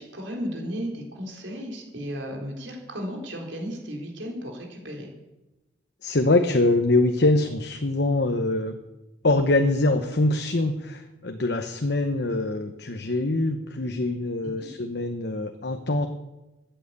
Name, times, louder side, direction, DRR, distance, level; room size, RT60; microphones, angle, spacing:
voice 1, 0.0-5.1 14.4-14.7, equal, 75° right, 1 dB, 3.9 m, -34 dB
voice 2, 6.0-8.8 9.2-16.1, left 2 dB, 60° left, 6 dB, 1.0 m, -24 dB
14.0 x 9.2 x 8.3 m, 1.0 s
head